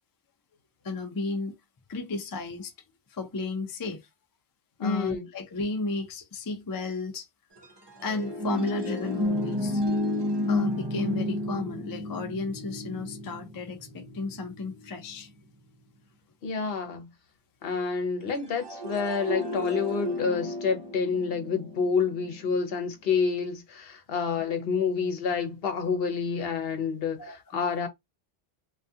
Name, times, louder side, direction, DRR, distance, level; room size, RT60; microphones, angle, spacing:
voice 1, 0.8-1.5 1.9-2.7 3.1-4.0 4.8-7.3 8.0-9.8 10.5-15.3 27.2-27.4, left 3 dB, 35° left, 0.3 m, -33 dB
voice 2, 4.8-5.3 16.4-17.1 17.6-27.9, left 5 dB, 70° left, 0.9 m, -28 dB
sound 1, 7.6-15.2 18.4-22.4, left 1 dB, 35° right, 0.4 m, -32 dB
2.3 x 2.2 x 2.6 m
omnidirectional pair, 1.1 m